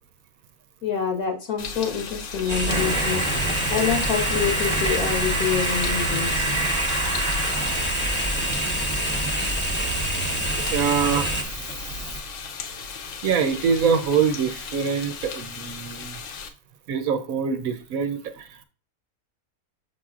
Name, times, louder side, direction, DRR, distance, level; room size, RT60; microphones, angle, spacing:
voice 1, 0.8-6.5, left 7 dB, 80° left, 1.8 m, -26 dB
sound 1, 1.6-16.5, left 5 dB, 65° left, 1.0 m, -37 dB
sound 2, 2.5-11.4, right 1 dB, 10° left, 0.9 m, -26 dB
Cricket, 2.7-12.2, right 2 dB, 25° right, 0.9 m, -30 dB
voice 2, 10.7-11.4 13.2-16.2 16.9-18.6, right 6 dB, 75° right, 1.1 m, -24 dB
6.8 x 5.7 x 2.4 m
omnidirectional pair, 1.5 m